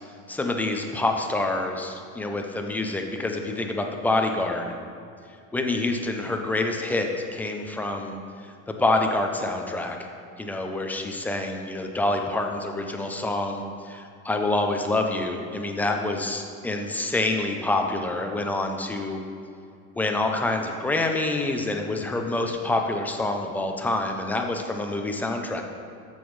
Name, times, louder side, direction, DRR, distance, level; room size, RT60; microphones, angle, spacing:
voice 1, 0.3-4.7 5.5-8.2 8.4-10.0 10.4-19.2 20.0-25.6, left 2 dB, 5° left, 3 dB, 0.3 m, -27 dB
13.5 x 7.0 x 3.1 m, 2.4 s
cardioid pair, 170°, 32 cm